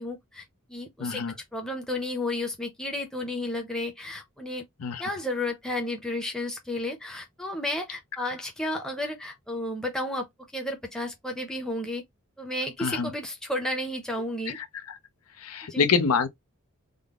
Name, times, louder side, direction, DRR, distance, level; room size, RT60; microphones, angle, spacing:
voice 1, 0.0-1.2 1.5-4.6 5.0-10.3 10.5-12.0 12.4-14.6 15.7-15.9, left 1 dB, 5° left, 0.6 m, -32 dB
voice 2, 1.0-1.3 4.8-5.1 12.8-13.1 14.5-14.7 15.4-16.3, left 5 dB, 85° left, 0.6 m, -26 dB
3.7 x 2.0 x 3.5 m
head